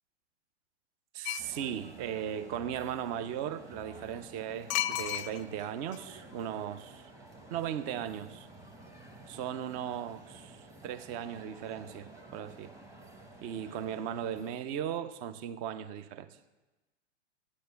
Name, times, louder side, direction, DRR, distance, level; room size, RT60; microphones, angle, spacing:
voice 1, 1.1-7.1 7.5-8.5 9.3-12.7 13.4-16.3, right 9 dB, 25° right, 0.4 m, -37 dB
sound 1, 1.2-1.6 4.7-5.6 5.9-6.0, left 14 dB, 40° left, 0.4 m, -32 dB
sound 2, 1.4-14.6, right 2 dB, 10° right, 0.9 m, -52 dB
8.8 x 8.3 x 6.8 m
hypercardioid pair, 120°, 36 cm